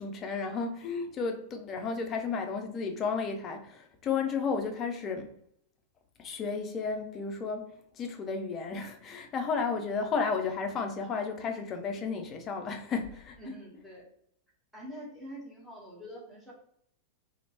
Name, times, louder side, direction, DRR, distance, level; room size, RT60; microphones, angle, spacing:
voice 1, 0.0-5.3 6.2-13.4, left 5 dB, 30° left, 0.4 m, -33 dB
voice 2, 13.4-14.1 14.7-16.5, equal, ahead, 1.2 m, -44 dB
2.8 x 2.1 x 2.8 m
figure-of-eight pair, 90°, 0 cm